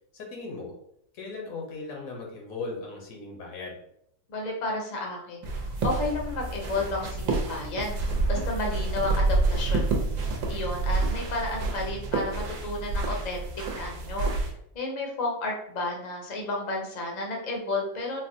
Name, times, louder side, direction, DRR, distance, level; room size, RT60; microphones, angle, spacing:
voice 1, 0.1-0.7 1.1-3.8, left 3 dB, 80° left, -1 dB, 1.3 m, -37 dB
voice 2, 4.3-8.0 8.3-9.9 10.5-13.4 13.7-14.3 14.7-18.3, left 2 dB, 45° left, 0 dB, 0.6 m, -32 dB
sound 1, 5.4-14.5, right 3 dB, 75° right, 1.1 m, -28 dB
3.9 x 2.1 x 2.6 m, 0.73 s
omnidirectional pair, 1.4 m